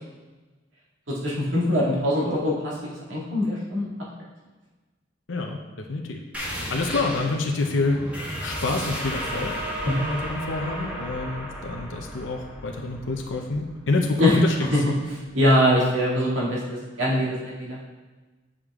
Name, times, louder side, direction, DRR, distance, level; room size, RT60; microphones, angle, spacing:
voice 1, 1.2-3.9 9.9-10.0 14.2-14.4 14.7-14.8 15.3-17.8, left 1 dB, 85° right, -6 dB, 2.1 m, -23 dB
voice 2, 5.3-6.2 6.5-8.0 8.4-9.5 9.9-14.8, left 3 dB, 80° left, 2 dB, 0.7 m, -27 dB
sound 1, 6.3-15.6, equal, 10° right, 1.3 m, -34 dB
8.5 x 5.1 x 3.6 m, 1.2 s
head